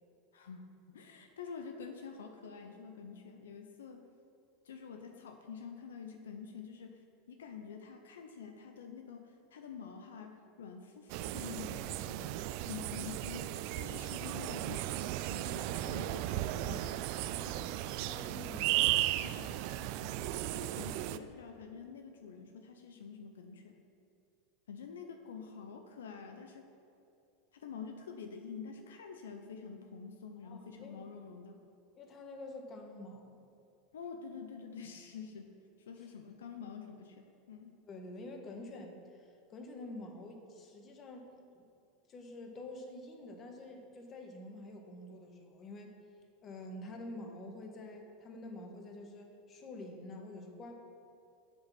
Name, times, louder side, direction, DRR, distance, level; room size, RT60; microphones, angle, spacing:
voice 1, 0.3-4.1 4.6-17.0 19.2-20.2 20.5-23.8 24.7-26.7 27.5-31.6 33.9-35.6 35.9-37.8, left 6 dB, 90° left, 5 dB, 0.7 m, -47 dB
sound 1, 11.1-21.2, right 14 dB, 60° right, 0.4 m, -35 dB
voice 2, 17.3-18.9 30.4-31.0 32.0-33.4 36.0-36.1 37.9-41.7 42.1-45.9 46.4-50.7, left 2 dB, 35° left, 3 dB, 1.5 m, -48 dB
7.6 x 7.0 x 6.0 m, 2.6 s
hypercardioid pair, 105°, 0 cm